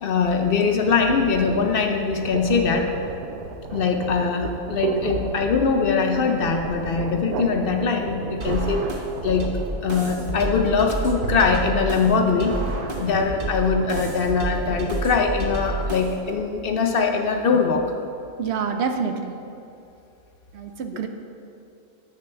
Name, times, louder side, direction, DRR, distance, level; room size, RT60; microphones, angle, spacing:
voice 1, 0.0-2.9 3.7-8.8 9.2-9.5 9.8-12.5 13.0-17.9, left 5 dB, 65° left, 4 dB, 0.5 m, -22 dB
sound 1, 0.8-15.3, right 5 dB, 85° right, 1.1 m, -33 dB
sound 2, 8.4-16.4, right 1 dB, 45° right, 0.9 m, -30 dB
voice 2, 18.4-19.3 20.5-21.1, right 6 dB, 65° right, 6 dB, 0.7 m, -27 dB
9.7 x 6.8 x 3.4 m, 2.7 s
omnidirectional pair, 1.5 m